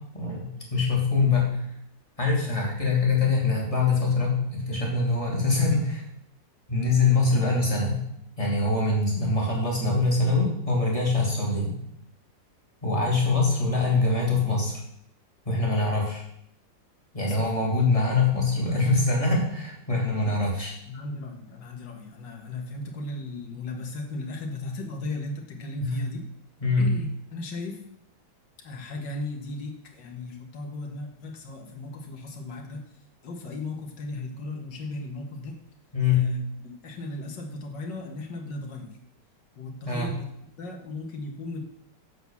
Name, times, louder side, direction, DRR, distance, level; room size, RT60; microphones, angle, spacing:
voice 1, 0.1-1.7 2.2-6.1 6.7-8.0 8.4-11.8 12.8-14.8 15.4-16.2 17.1-20.7 25.8-26.0 26.6-26.9 35.9-36.3 39.8-40.1, left 3 dB, 20° left, -3 dB, 2.9 m, -24 dB
voice 2, 17.2-17.6 20.1-20.3 20.9-26.2 26.8-27.8 28.6-35.6 36.2-39.0 39.6-40.3 40.6-41.6, left 2 dB, 75° left, 1 dB, 2.2 m, -36 dB
7.7 x 6.3 x 7.1 m, 0.72 s
omnidirectional pair, 2.0 m